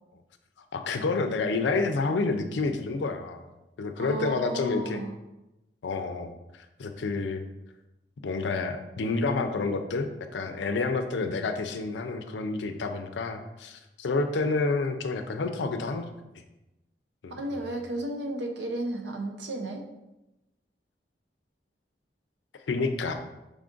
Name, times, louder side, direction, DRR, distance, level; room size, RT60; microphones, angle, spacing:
voice 1, 0.7-3.5 3.8-5.0 5.8-7.4 8.2-16.0 17.2-17.4 22.7-23.1, left 3 dB, 85° left, 7 dB, 0.4 m, -29 dB
voice 2, 4.0-5.1 17.3-19.8, right 1 dB, 80° right, 3 dB, 0.7 m, -33 dB
5.0 x 2.5 x 3.7 m, 0.96 s
head